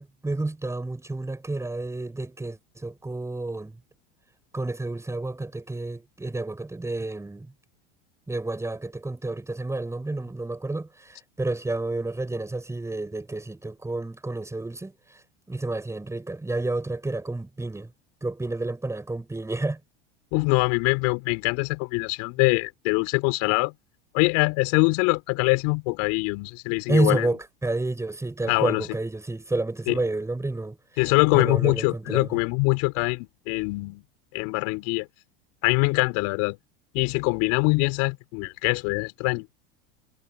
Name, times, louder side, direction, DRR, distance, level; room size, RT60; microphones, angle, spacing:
voice 1, 0.0-3.7 4.5-7.5 8.3-14.9 15.5-17.9 18.2-19.8 26.9-30.8 31.3-32.3, right 2 dB, 10° right, 5.8 m, -30 dB
voice 2, 20.3-23.7 24.1-27.3 28.5-28.8 29.9-30.0 31.0-34.0 34.3-35.1 35.6-36.6 36.9-39.5, left 29 dB, 65° left, 5.0 m, -23 dB
supercardioid pair, 105°, 31 cm